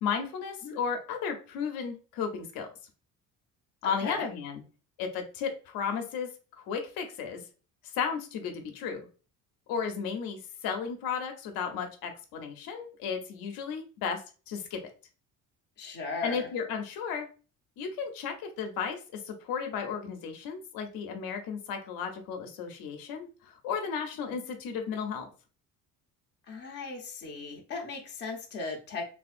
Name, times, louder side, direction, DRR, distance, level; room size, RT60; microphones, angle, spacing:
voice 1, 0.0-2.7 3.8-4.6 5.0-6.3 6.6-7.4 7.8-9.0 9.7-14.8 16.2-17.3 17.8-25.3, left 6 dB, 85° left, 5 dB, 0.7 m, -34 dB
voice 2, 3.8-4.3 15.8-16.5 26.5-29.0, left 4 dB, 30° left, 0 dB, 0.7 m, -37 dB
3.4 x 2.4 x 2.4 m, 0.36 s
cardioid pair, 175°, 34 cm